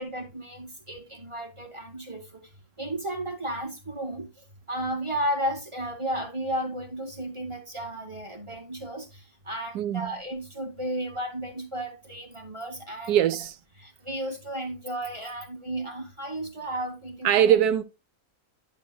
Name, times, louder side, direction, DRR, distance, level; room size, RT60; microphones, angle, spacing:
voice 1, 0.0-2.2 2.8-4.3 4.7-9.1 9.5-13.2 13.8-17.6, right 1 dB, 20° right, 1.8 m, -33 dB
voice 2, 9.7-10.1 13.1-13.6 17.2-17.8, right 10 dB, 85° right, 1.2 m, -21 dB
11.0 x 7.1 x 2.2 m
omnidirectional pair, 1.6 m